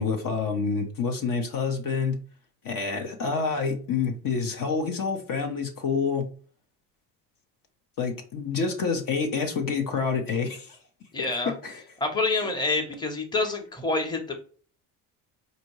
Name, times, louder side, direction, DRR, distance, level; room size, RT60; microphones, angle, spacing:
voice 1, 0.0-2.2 2.6-6.3 8.0-10.8 11.6-11.8, left 5 dB, 50° left, 4 dB, 0.9 m, -27 dB
voice 2, 11.1-11.5 12.0-14.4, left 3 dB, 10° left, 3 dB, 1.0 m, -27 dB
4.2 x 2.7 x 3.1 m, 0.42 s
supercardioid pair, 85°, 44 cm